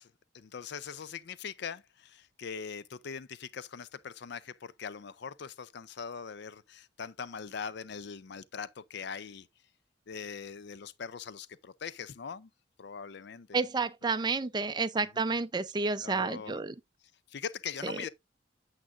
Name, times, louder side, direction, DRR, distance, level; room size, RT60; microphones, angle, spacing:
voice 1, 0.0-9.5 10.1-12.5 12.8-13.6 14.9-15.1 16.0-16.6 17.3-18.1, left 6 dB, 60° left, 0.5 m, -41 dB
voice 2, 13.5-16.7 17.8-18.0, right 4 dB, 20° right, 0.5 m, -30 dB
8.6 x 7.3 x 2.5 m
head